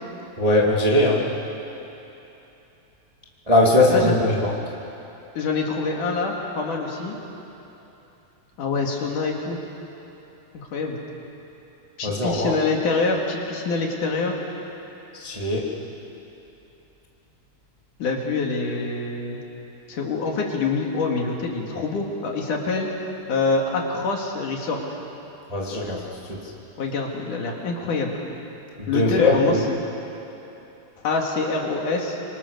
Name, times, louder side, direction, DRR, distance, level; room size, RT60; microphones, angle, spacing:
voice 1, 0.4-1.2 3.5-4.5 12.0-12.5 15.1-15.7 25.5-26.0 26.3-26.4 28.8-29.7, left 2 dB, 15° right, -3 dB, 1.7 m, -20 dB
voice 2, 5.4-7.2 8.6-9.6 10.5-11.0 12.0-14.4 18.0-19.4 19.9-22.9 23.3-24.8 26.8-28.1 28.9-29.8 31.0-32.2, left 3 dB, 60° left, 0 dB, 3.4 m, -25 dB
26.5 x 25.0 x 6.7 m, 3.0 s
omnidirectional pair, 4.5 m